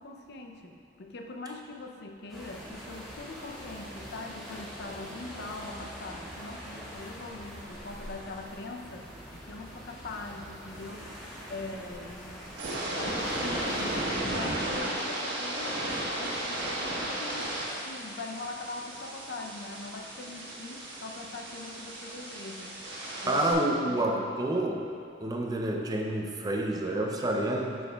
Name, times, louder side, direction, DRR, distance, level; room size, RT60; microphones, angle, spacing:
voice 1, 0.0-11.2 11.5-12.5 12.8-22.8 23.2-23.4 23.8-24.4, left 2 dB, 65° left, 3 dB, 0.6 m, -42 dB
sound 1, 2.3-14.1, equal, ahead, 1.5 m, -44 dB
sound 2, 12.4-23.5, right 1 dB, 75° right, 1.3 m, -34 dB
voice 2, 23.3-24.8 25.2-27.8, right 1 dB, 20° right, 0 dB, 0.5 m, -28 dB
8.7 x 6.3 x 2.3 m, 2.7 s
head